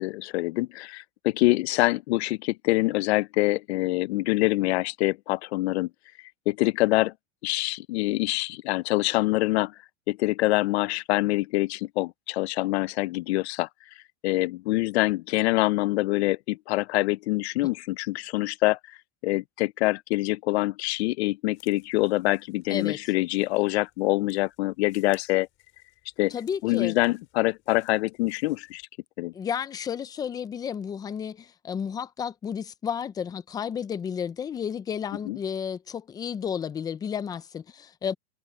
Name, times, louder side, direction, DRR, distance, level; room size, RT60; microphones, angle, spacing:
voice 1, 0.0-5.9 6.5-7.1 7.4-9.7 10.1-13.7 14.2-19.0 19.2-25.5 26.2-26.3 26.6-28.8 29.2-29.3 35.3-35.4, left 20 dB, 65° left, 0.7 m, -25 dB
sound 1, 21.5-28.9, left 16 dB, 35° left, 5.0 m, -62 dB
voice 2, 26.3-27.0 29.3-38.1, left 7 dB, 10° left, 0.5 m, -32 dB
supercardioid pair, 155°, 34 cm